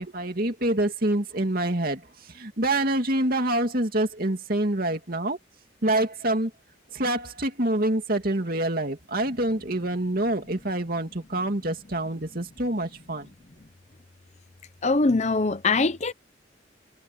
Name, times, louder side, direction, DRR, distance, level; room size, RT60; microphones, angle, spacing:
voice 1, 0.0-5.4 5.8-6.5 6.9-13.3, right 1 dB, 50° right, 2.7 m, -26 dB
voice 2, 14.8-16.1, left 3 dB, 35° left, 0.7 m, -22 dB
head